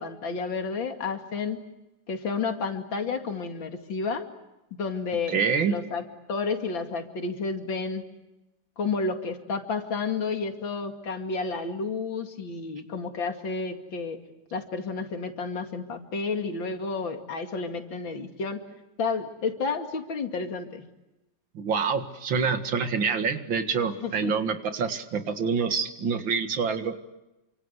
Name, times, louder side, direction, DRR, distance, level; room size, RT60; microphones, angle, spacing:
voice 1, 0.0-1.6 2.1-4.3 4.8-5.4 5.6-6.0 6.3-8.0 8.8-14.2 14.5-18.6 19.0-20.8 24.0-24.3, left 4 dB, 90° left, 6 dB, 3.2 m, -31 dB
voice 2, 5.3-5.7 21.5-26.9, right 5 dB, 90° right, 8 dB, 2.6 m, -26 dB
28.5 x 25.5 x 8.1 m, 0.98 s
omnidirectional pair, 2.0 m